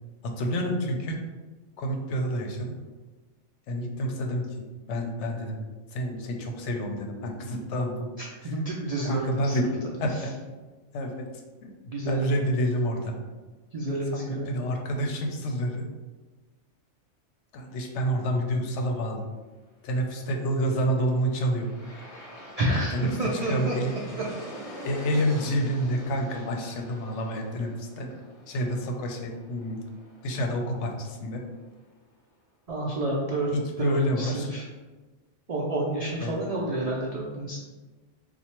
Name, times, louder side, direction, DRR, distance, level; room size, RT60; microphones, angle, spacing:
voice 1, 0.2-1.2 1.8-2.7 3.7-5.6 5.9-8.1 8.4-8.6 9.0-9.7 10.0-10.3 10.9-11.3 11.6-11.7 12.0-13.1 14.1-15.9 17.5-19.2 19.8-21.7 22.7-23.1 23.5-23.9 24.8-28.2 28.5-29.8 30.2-31.4 33.5-34.5 36.2-36.4, equal, 70° left, 3 dB, 0.8 m, -28 dB
voice 2, 8.2-9.6 10.1-10.3 11.9-12.3 13.7-14.5 22.6-24.0 32.7-34.6 35.5-37.6, right 1 dB, 80° right, -4 dB, 0.3 m, -29 dB
Aircraft, 20.7-31.8, equal, 45° left, 0.5 m, -45 dB
4.3 x 2.3 x 2.9 m, 1.3 s
omnidirectional pair, 1.3 m